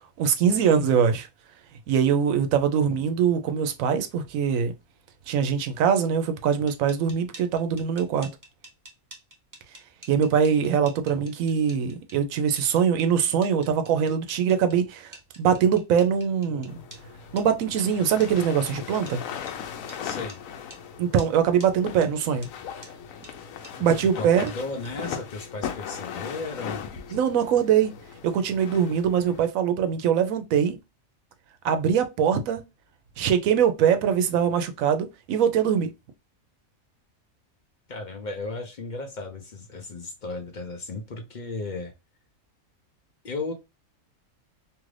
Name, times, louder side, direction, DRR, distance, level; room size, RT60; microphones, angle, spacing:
voice 1, 0.2-1.3 1.9-4.7 5.3-8.3 10.1-16.8 17.3-19.2 21.0-22.5 23.8-24.5 27.1-27.9 28.2-30.8 31.6-32.6 33.2-35.9, right 7 dB, 90° right, 1.0 m, -23 dB
sound 1, 6.7-17.0 17.4-17.5 17.8-17.9 18.2-18.3 18.7-18.8 19.1-19.2 19.5-19.6 19.9-20.0 20.3-20.4 20.7-20.8 21.2-21.3 21.6-21.7 22.0-22.1 22.4-22.5 22.8-22.9 23.2-23.3 23.6-23.7 24.0-24.1 24.5-24.6 24.8-24.9, right 2 dB, 15° right, 0.8 m, -46 dB
sound 2, 16.7-29.5, left 8 dB, 85° left, 1.0 m, -38 dB
voice 2, 20.0-20.4 23.8-27.2 37.9-41.9 43.2-43.5, left 3 dB, 50° left, 0.5 m, -35 dB
2.8 x 2.5 x 3.1 m
omnidirectional pair, 1.4 m